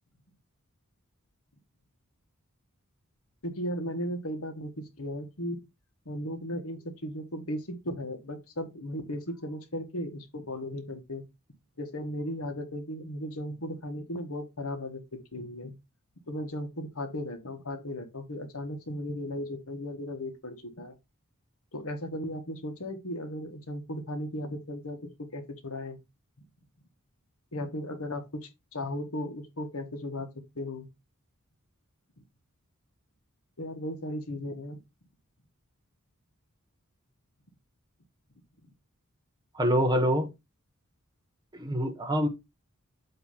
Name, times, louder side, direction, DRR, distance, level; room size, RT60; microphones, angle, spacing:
voice 1, 3.4-5.6 6.0-11.2 11.8-15.7 16.3-21.0 21.7-26.0 27.5-30.3 30.5-30.9 32.2-32.3 33.6-34.8, left 1 dB, 75° left, 1.5 m, -36 dB
voice 2, 39.5-40.3 41.5-42.3, equal, 20° right, 1.1 m, -25 dB
8.0 x 3.1 x 5.6 m
head